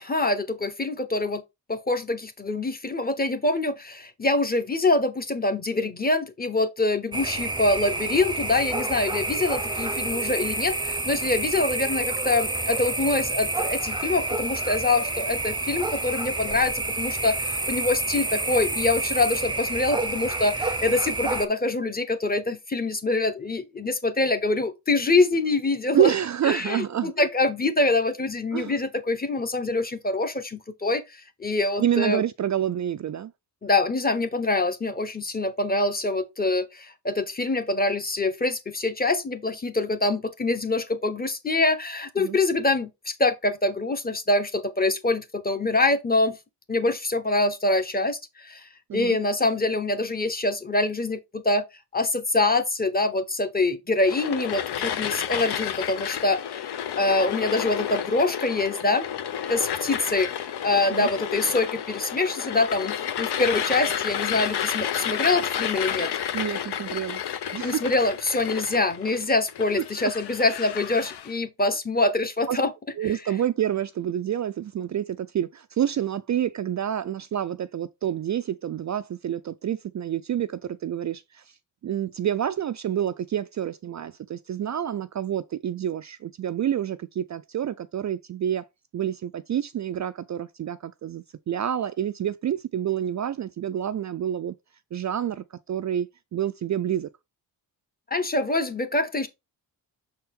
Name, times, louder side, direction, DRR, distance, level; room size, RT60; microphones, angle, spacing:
voice 1, 0.0-1.4 1.7-26.1 26.5-31.0 31.4-32.2 33.6-46.4 46.7-51.6 51.9-59.1 59.5-66.1 67.6-72.7 98.1-99.3, left 2 dB, 20° left, 1.0 m, -25 dB
sound 1, 7.1-21.5, right 2 dB, 10° right, 0.7 m, -29 dB
voice 2, 25.9-27.1 28.5-28.8 31.8-33.3 42.2-42.4 48.9-49.2 60.9-61.1 66.3-67.2 67.5-67.8 70.0-70.1 72.5-72.6 73.0-81.4 81.8-88.6 88.9-94.5 94.9-97.1, right 10 dB, 45° right, 0.4 m, -28 dB
sound 2, 54.0-71.3, left 9 dB, 65° left, 0.8 m, -31 dB
6.5 x 4.3 x 3.6 m
cardioid pair, 110°, 42 cm